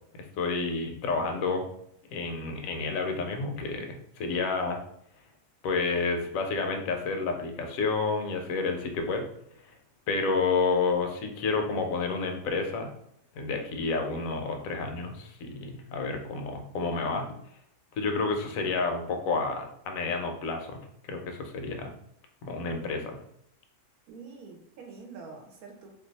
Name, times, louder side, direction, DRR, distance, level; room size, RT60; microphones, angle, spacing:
voice 1, 0.1-1.7 2.1-4.8 5.6-9.2 9.7-9.8 10.1-12.9 13.3-17.3 17.9-21.9 22.4-23.2, left 4 dB, 70° left, 4 dB, 0.9 m, -30 dB
voice 2, 24.1-26.0, right 4 dB, 75° right, 1 dB, 1.0 m, -46 dB
2.6 x 2.3 x 3.9 m, 0.72 s
omnidirectional pair, 1.6 m